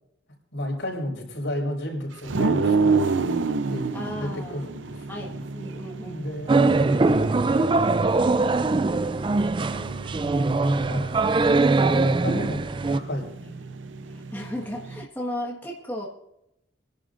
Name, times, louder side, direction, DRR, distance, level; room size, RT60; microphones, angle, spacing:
voice 1, 0.5-5.4 6.0-7.9 9.6-11.2 11.7-13.3, equal, 75° left, -1 dB, 4.9 m, -34 dB
sound 1, 2.2-15.0, right 4 dB, 80° right, 0.6 m, -30 dB
voice 2, 3.9-4.6 5.1-6.3 11.9-12.1 13.4-13.5 14.1-16.1, left 1 dB, 10° left, -3 dB, 1.5 m, -35 dB
sound 2, 6.5-13.0, right 3 dB, 25° right, 0.4 m, -22 dB
29.0 x 11.0 x 2.6 m, 0.84 s
head